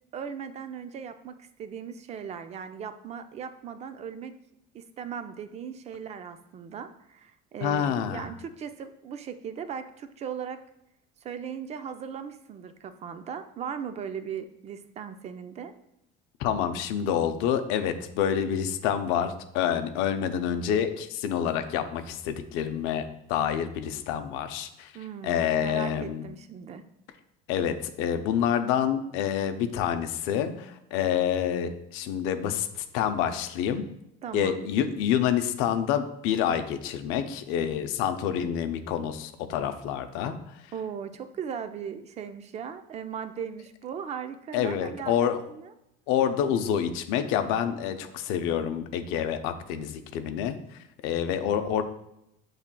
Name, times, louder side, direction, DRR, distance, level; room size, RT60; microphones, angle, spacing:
voice 1, 0.1-4.3 4.7-10.6 11.2-15.7 24.9-26.9 34.2-34.6 40.7-45.7, right 7 dB, 35° right, 10 dB, 0.4 m, -38 dB
voice 2, 7.6-8.3 16.4-24.9 25.2-26.3 27.5-33.8 34.3-40.3 44.5-45.4 46.1-51.8, left 9 dB, 80° left, 8 dB, 0.5 m, -27 dB
7.1 x 3.2 x 2.2 m, 0.83 s
cardioid pair, 135°, 21 cm